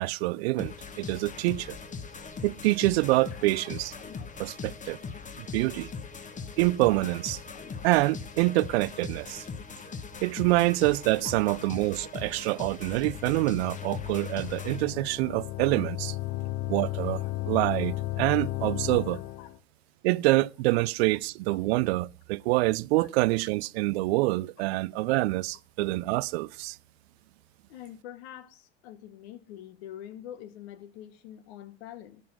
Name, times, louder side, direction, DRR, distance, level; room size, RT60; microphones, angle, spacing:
voice 1, 0.0-1.8 2.4-3.9 4.4-5.0 5.4-5.9 6.6-7.4 7.8-9.5 10.2-16.2 16.7-19.2 20.0-26.8, right 21 dB, 75° right, 0.5 m, -26 dB
sound 1, 0.6-14.8, left 5 dB, 25° left, 1.2 m, -40 dB
voice 2, 11.2-11.6 19.4-19.5 23.0-23.1 23.4-23.5 24.6-24.7 27.7-32.2, left 11 dB, 70° left, 1.4 m, -45 dB
sound 2, 12.8-19.6, left 17 dB, 55° left, 0.7 m, -34 dB
13.0 x 5.6 x 6.1 m
supercardioid pair, 110°, 32 cm